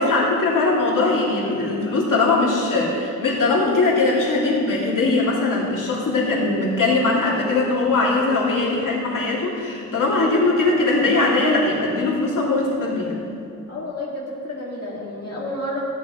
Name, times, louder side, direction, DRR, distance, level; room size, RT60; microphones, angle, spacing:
voice 1, 0.0-13.2, left 3 dB, 80° left, -5 dB, 2.6 m, -20 dB
voice 2, 13.7-15.8, left 1 dB, 50° left, -6 dB, 2.2 m, -30 dB
17.0 x 11.0 x 3.1 m, 2.5 s
wide cardioid pair, 110°, 32 cm